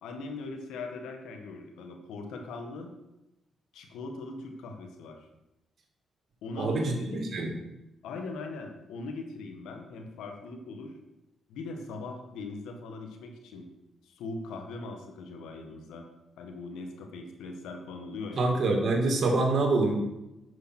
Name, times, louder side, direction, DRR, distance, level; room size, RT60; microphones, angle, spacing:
voice 1, 0.0-2.9 3.7-5.3 6.4-7.2 8.0-10.9 11.5-13.7 14.0-16.1 16.4-18.5, left 3 dB, 85° left, 4 dB, 1.6 m, -40 dB
voice 2, 6.6-7.5 18.4-20.0, right 2 dB, 50° right, 1 dB, 2.2 m, -26 dB
9.7 x 5.9 x 6.0 m, 0.92 s
cardioid pair, 70°, 0 cm